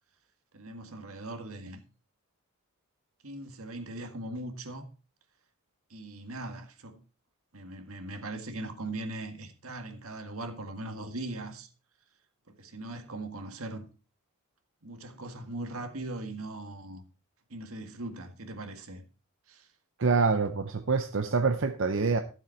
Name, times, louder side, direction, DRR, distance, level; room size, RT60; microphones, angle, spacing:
voice 1, 0.5-1.8 3.2-4.9 5.9-7.0 7.5-11.7 12.5-13.9 14.8-17.0 17.5-19.0 19.5-19.7, right 2 dB, 90° right, 1.8 m, -40 dB
voice 2, 20.0-22.2, right 4 dB, 60° right, 0.7 m, -26 dB
12.5 x 7.4 x 4.4 m
head